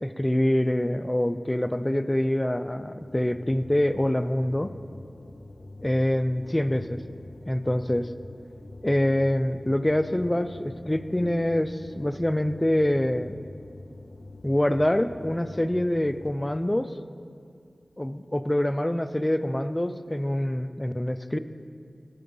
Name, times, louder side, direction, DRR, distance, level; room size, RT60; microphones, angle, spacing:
voice 1, 0.0-4.7 5.8-7.0 7.5-8.1 8.8-13.4 14.4-17.0 18.0-21.4, left 1 dB, 20° left, 11 dB, 0.4 m, -25 dB
sound 1, 3.0-16.7, left 2 dB, 70° left, 0.6 m, -45 dB
12.5 x 4.7 x 5.4 m, 2.4 s
cardioid pair, 40°, 0 cm